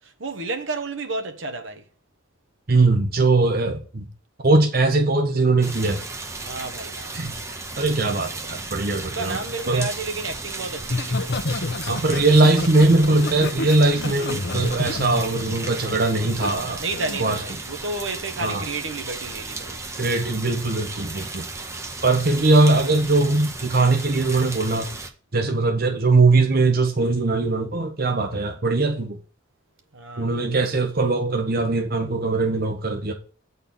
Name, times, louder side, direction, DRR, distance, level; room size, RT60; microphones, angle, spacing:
voice 1, 0.0-1.8 6.4-7.2 9.0-11.4 16.8-19.8 29.9-30.5, right 3 dB, 70° right, 1.2 m, -31 dB
voice 2, 2.7-4.0 4.4-6.0 7.1-7.3 7.8-9.4 9.7-9.9 11.9-16.8 17.2-17.4 18.4-18.6 20.0-21.4 22.0-24.9 25.3-29.2 30.2-33.1, right 2 dB, 50° right, 0.9 m, -20 dB
sound 1, 5.6-25.1, right 3 dB, 15° right, 0.8 m, -35 dB
Laughter, 10.8-16.5 16.9-17.2, left 2 dB, 55° left, 0.8 m, -29 dB
8.7 x 4.2 x 5.3 m
head